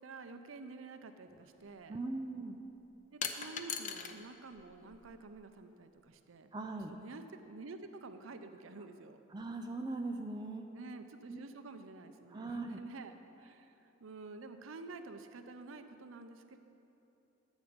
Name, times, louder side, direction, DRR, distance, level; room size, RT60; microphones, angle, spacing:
voice 1, 0.0-2.0 3.1-6.5 6.9-9.2 10.7-13.7 14.0-16.6, right 3 dB, 85° right, 8 dB, 0.6 m, -49 dB
sound 1, 1.3-1.4 3.2-4.2 4.5-5.4, left 7 dB, 40° left, 0.6 m, -40 dB
voice 2, 1.9-2.6 6.5-6.9 9.3-10.7 11.3-11.4 12.3-12.8, right 2 dB, 20° right, 3 dB, 0.4 m, -40 dB
11.5 x 8.1 x 5.1 m, 2.9 s
head